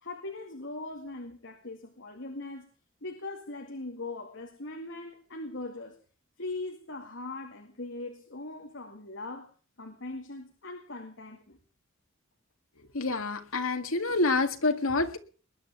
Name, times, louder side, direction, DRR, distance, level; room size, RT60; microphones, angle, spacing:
voice 1, 0.0-2.7 3.0-6.0 6.4-9.5 9.8-11.6, left 2 dB, 65° left, 2.3 m, -40 dB
voice 2, 12.9-15.2, left 3 dB, 90° left, 2.0 m, -27 dB
21.0 x 9.9 x 6.9 m
head